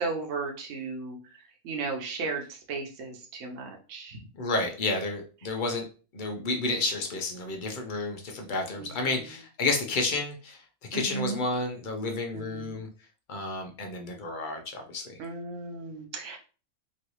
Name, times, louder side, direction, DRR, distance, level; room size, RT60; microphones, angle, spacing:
voice 1, 0.0-1.4 1.6-4.2 8.8-9.2 10.9-11.4 12.3-12.8 15.2-16.4, right 4 dB, 65° right, 1 dB, 1.1 m, -35 dB
voice 2, 4.3-5.8 6.1-10.6 10.9-12.9 13.3-15.1, left 3 dB, 50° left, 3 dB, 0.6 m, -31 dB
3.1 x 2.5 x 3.0 m, 0.35 s
omnidirectional pair, 1.5 m